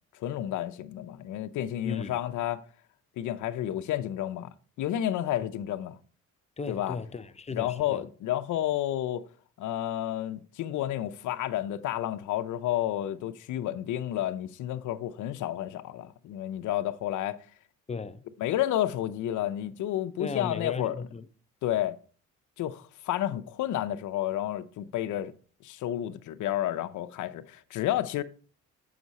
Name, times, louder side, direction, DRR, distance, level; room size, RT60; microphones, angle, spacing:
voice 1, 0.2-2.6 3.2-4.5 4.8-6.0 6.7-7.0 7.5-9.3 9.6-17.4 18.4-21.0 21.6-22.0 22.6-25.3 25.6-28.2, left 12 dB, 75° left, 0.7 m, -31 dB
voice 2, 6.6-8.1 17.9-18.2 20.2-21.3, left 4 dB, 20° left, 0.6 m, -36 dB
7.3 x 6.0 x 4.1 m
cardioid pair, 90°, 30 cm